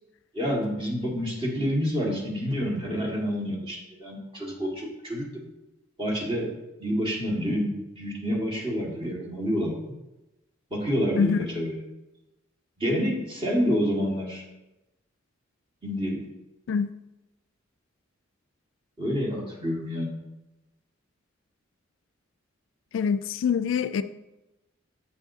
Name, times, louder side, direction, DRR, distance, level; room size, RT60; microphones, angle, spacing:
voice 1, 0.3-5.5 6.0-6.5 6.8-9.8 10.7-11.8 12.8-14.4 15.8-16.2 19.0-20.2, equal, 25° right, -2 dB, 1.7 m, -28 dB
voice 2, 22.9-24.0, left 6 dB, 65° left, 12 dB, 0.3 m, -25 dB
7.6 x 7.2 x 2.7 m, 0.98 s
head